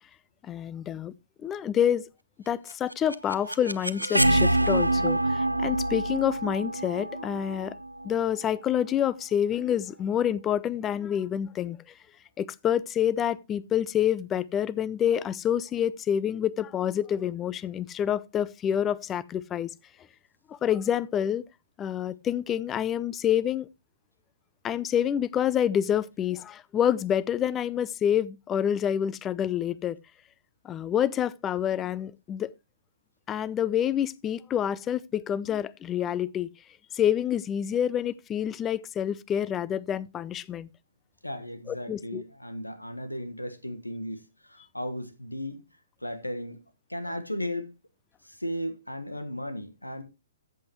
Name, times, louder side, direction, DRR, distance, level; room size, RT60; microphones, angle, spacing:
voice 1, 0.4-1.1 1.4-2.1 2.5-7.7 8.0-11.8 12.4-19.7 20.5-21.4 21.8-23.7 24.6-30.0 30.6-32.5 33.3-36.5 36.9-40.7 41.7-42.2, left 9 dB, 20° left, 0.5 m, -27 dB
sound 1, 2.7-8.6, right 1 dB, 90° right, 0.7 m, -26 dB
voice 2, 41.2-45.6 46.0-46.6 46.9-47.7 48.2-50.0, equal, 90° left, 1.5 m, -35 dB
14.0 x 7.9 x 3.0 m
figure-of-eight pair, 120°, 0 cm